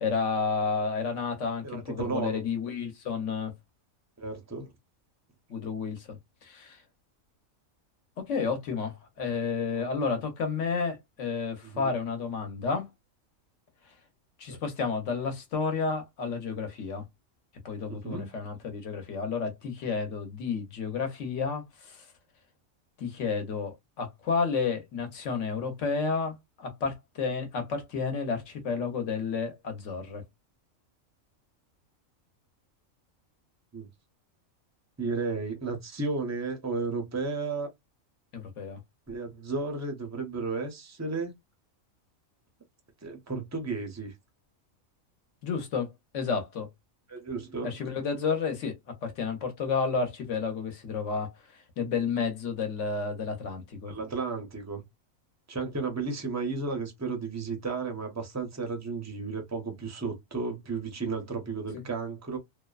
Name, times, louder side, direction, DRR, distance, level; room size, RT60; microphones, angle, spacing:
voice 1, 0.0-3.5 5.5-6.8 8.2-12.9 14.4-17.0 17.6-22.1 23.0-30.2 38.3-38.8 45.4-45.9 46.1-46.7 47.6-48.8 49.0-53.9, left 5 dB, 65° left, 1.1 m, -31 dB
voice 2, 1.6-2.4 4.2-4.7 11.6-11.9 14.5-14.6 18.0-18.3 33.7-33.9 35.0-37.7 39.1-41.3 43.0-44.1 47.1-47.7 53.9-54.8 55.5-62.4, right 4 dB, 20° right, 0.4 m, -33 dB
2.6 x 2.2 x 2.3 m
omnidirectional pair, 1.4 m